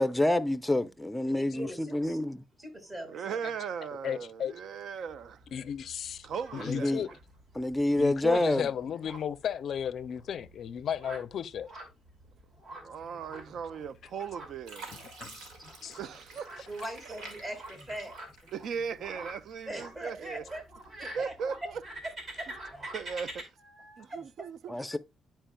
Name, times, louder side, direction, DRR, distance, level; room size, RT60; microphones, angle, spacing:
voice 1, 0.0-2.4 6.6-7.1 7.6-8.7 15.6-15.7 24.7-25.0, left 1 dB, 10° left, 0.5 m, -28 dB
voice 2, 1.2-2.2 2.6-3.5 15.6-15.7 16.7-18.1 19.7-20.6 21.0-21.7 22.3-22.8 23.6-24.2, right 1 dB, 25° right, 2.2 m, -42 dB
voice 3, 3.1-5.4 6.2-7.0 12.8-15.1 15.9-16.5 18.5-20.4 21.1-21.8 22.9-23.5 24.0-24.7, right 6 dB, 70° right, 0.4 m, -38 dB
voice 4, 4.0-4.5 5.5-6.3 6.5-7.1 8.0-11.7 15.2-15.4 15.8-16.0, left 8 dB, 60° left, 0.4 m, -34 dB
sound 1, 5.1-23.4, right 1 dB, 50° right, 2.2 m, -47 dB
Fill (with liquid), 13.9-14.3 14.6-19.0 19.5-20.3 20.8-21.0, right 3 dB, 90° right, 1.7 m, -49 dB
10.5 x 4.4 x 2.2 m
cardioid pair, 90°, 0 cm